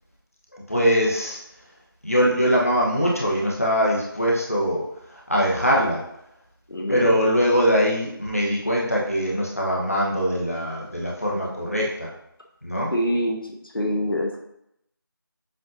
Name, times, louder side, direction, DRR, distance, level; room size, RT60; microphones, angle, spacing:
voice 1, 0.5-1.4 2.0-4.8 5.1-6.0 6.9-12.1 12.6-12.9, equal, 40° left, -3 dB, 1.0 m, -22 dB
voice 2, 6.7-7.2 12.9-14.4, equal, 70° left, 0 dB, 0.9 m, -26 dB
7.5 x 2.7 x 2.6 m, 0.78 s
figure-of-eight pair, 180°, 12 cm